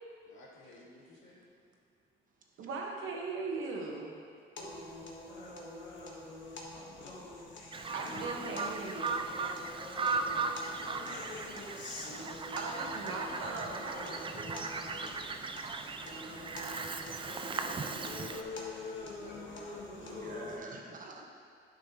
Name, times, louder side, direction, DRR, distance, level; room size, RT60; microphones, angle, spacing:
voice 1, 0.2-1.4 13.9-15.0 17.0-20.4, left 2 dB, 85° left, -4 dB, 1.8 m, -55 dB
voice 2, 2.6-4.2 7.9-9.3 12.2-14.1, right 3 dB, 85° right, -1 dB, 1.2 m, -39 dB
sound 1, 4.6-20.6, left 2 dB, 70° left, 1.2 m, -45 dB
Bird vocalization bird call bird song, 7.7-18.4, right 4 dB, 25° right, 0.4 m, -37 dB
voice 3, 19.9-21.3, right 3 dB, 40° right, 0 dB, 1.1 m, -48 dB
10.0 x 6.3 x 2.9 m, 2.3 s
cardioid pair, 90°, 20 cm